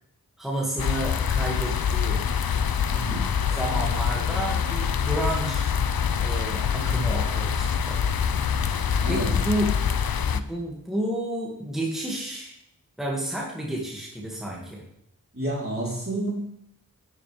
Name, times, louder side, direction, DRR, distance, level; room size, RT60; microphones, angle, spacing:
voice 1, 0.4-2.2 3.5-5.7 6.2-8.0 9.0-9.7 10.3-12.5 13.0-14.8, right 1 dB, ahead, -3 dB, 2.3 m, -30 dB
sound 1, 0.8-10.4, left 7 dB, 85° left, 0.6 m, -25 dB
voice 2, 2.9-3.3 9.0-9.3 15.3-16.3, right 1 dB, 40° right, -5 dB, 4.0 m, -29 dB
11.0 x 9.6 x 3.5 m, 0.74 s
wide cardioid pair, 40°, 35 cm